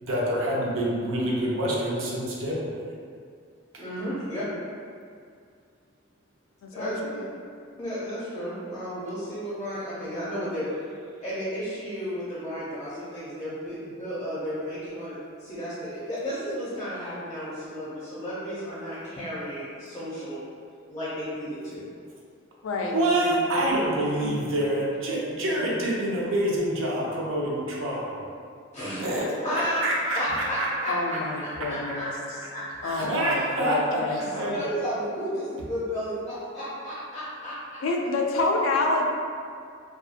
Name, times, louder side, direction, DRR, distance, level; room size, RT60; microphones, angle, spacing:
voice 1, 0.0-2.8 22.9-28.2 29.0-31.2 32.9-34.6, right 1 dB, 80° right, -4 dB, 0.6 m, -27 dB
voice 2, 3.8-4.5 6.7-7.3 7.8-10.7 11.2-20.4 20.9-21.9 28.7-29.8 30.1-32.9 34.3-37.5 37.9-38.1, equal, 15° left, -10 dB, 0.5 m, -33 dB
voice 3, 6.6-7.2 22.6-23.4 30.9-32.1 32.8-34.2 37.8-39.0, left 2 dB, 80° left, 0 dB, 0.3 m, -28 dB
2.7 x 2.3 x 2.4 m, 2.2 s
head